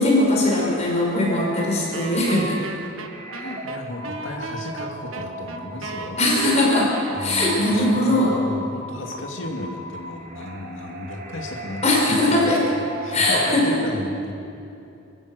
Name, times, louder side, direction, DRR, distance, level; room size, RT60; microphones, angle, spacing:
voice 1, 0.0-2.6 3.4-3.5 6.2-8.3 11.8-12.6 13.1-13.8, left 1 dB, 30° left, -3 dB, 5.3 m, -20 dB
sound 1, 1.1-13.8, right 1 dB, 45° right, 1.9 m, -37 dB
Wind instrument woodwind instrument, 1.9-7.7, right 4 dB, 70° right, 1.3 m, -36 dB
voice 2, 3.4-6.2 7.1-11.8 12.1-12.5 13.0-14.3, left 1 dB, 60° left, 1 dB, 2.6 m, -34 dB
27.0 x 15.0 x 6.5 m, 2.7 s
head